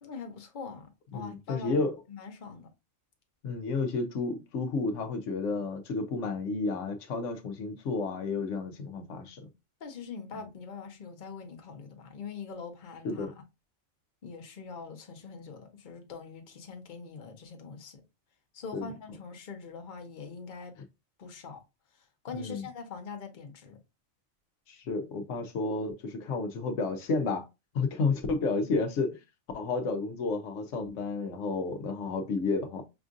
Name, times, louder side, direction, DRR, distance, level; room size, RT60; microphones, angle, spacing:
voice 1, 0.0-2.7 9.8-13.3 14.2-18.0 18.5-20.8 21.2-21.6 21.9-23.8, left 5 dB, 45° left, 0.9 m, -43 dB
voice 2, 1.1-2.0 3.4-9.4 13.0-13.3 18.7-18.9 22.3-22.6 24.7-27.5 27.7-29.2 29.5-32.8, left 3 dB, 80° left, 1.0 m, -31 dB
5.8 x 2.5 x 2.5 m
omnidirectional pair, 1.2 m